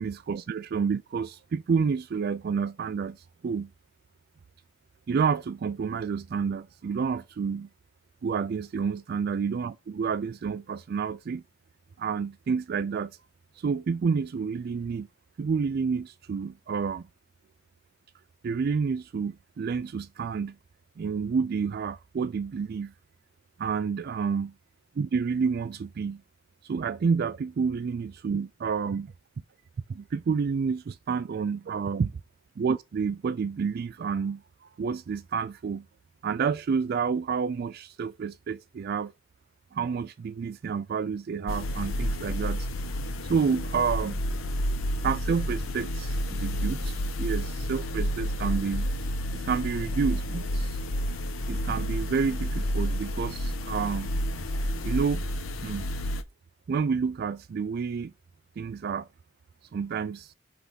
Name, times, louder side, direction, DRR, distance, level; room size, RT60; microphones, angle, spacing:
voice 1, 0.0-3.2 3.4-3.7 5.1-7.7 8.2-11.4 12.0-13.1 13.6-15.1 15.4-17.0 18.4-20.6 21.0-22.9 23.6-24.5 25.0-26.2 26.6-29.1 29.9-32.1 32.6-34.4 34.8-35.8 36.2-39.1 39.7-42.7 43.3-44.2 45.0-48.9 49.3-50.8 51.5-54.1 54.8-55.2 55.6-55.9 56.7-58.1 58.6-59.1 59.7-60.3, right 5 dB, 50° right, 0.3 m, -29 dB
sound 1, 41.5-56.2, equal, 90° left, 0.9 m, -30 dB
5.9 x 3.4 x 5.5 m
head